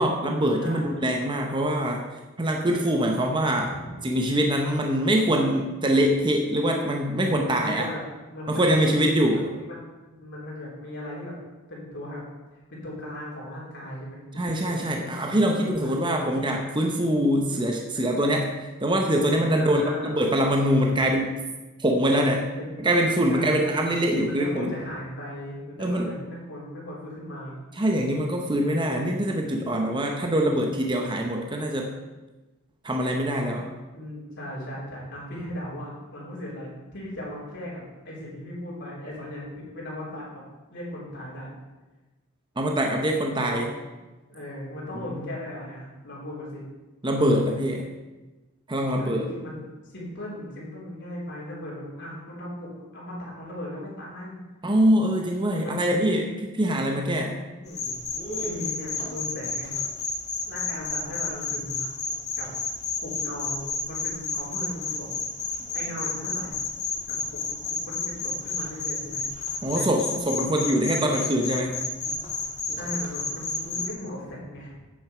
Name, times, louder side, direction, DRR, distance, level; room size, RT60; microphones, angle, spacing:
voice 1, 0.0-2.0 2.4-3.7 4.0-7.9 8.5-9.5 14.4-18.5 18.8-21.3 21.8-22.5 22.8-24.7 25.8-26.1 27.8-31.9 32.8-33.7 42.6-43.7 45.1-45.2 47.0-47.9 48.7-49.3 54.6-57.4 69.6-71.8, equal, 20° right, 2 dB, 0.8 m, -24 dB
voice 2, 3.6-3.9 7.1-8.0 8.3-8.9 9.3-11.3 11.7-12.2 12.5-14.9 15.6-16.3 19.5-20.2 20.8-21.0 22.2-22.8 23.3-23.9 24.2-27.6 33.9-40.2 40.7-41.5 43.3-43.7 44.3-46.6 48.9-54.4 55.6-55.8 57.6-58.0 58.4-59.7 60.5-61.8 62.4-62.5 63.0-63.6 63.9-65.1 65.7-66.6 67.1-67.4 67.7-69.2 69.7-69.9 72.7-74.7, left 1 dB, 55° left, -5 dB, 3.2 m, -37 dB
sound 1, 57.7-73.9, left 4 dB, 30° left, 1.7 m, -31 dB
8.8 x 6.9 x 4.9 m, 1.1 s
head